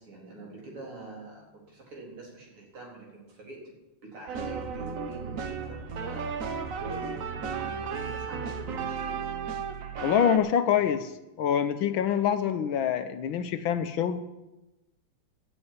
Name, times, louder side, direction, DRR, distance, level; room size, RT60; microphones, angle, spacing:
voice 1, 0.0-9.4, right 3 dB, 90° right, -2 dB, 4.9 m, -45 dB
sound 1, 4.3-10.4, right 6 dB, 50° right, 1.1 m, -34 dB
voice 2, 10.0-11.1 11.4-14.2, left 8 dB, 75° left, 10 dB, 1.5 m, -25 dB
12.5 x 8.1 x 9.4 m, 1.0 s
omnidirectional pair, 2.3 m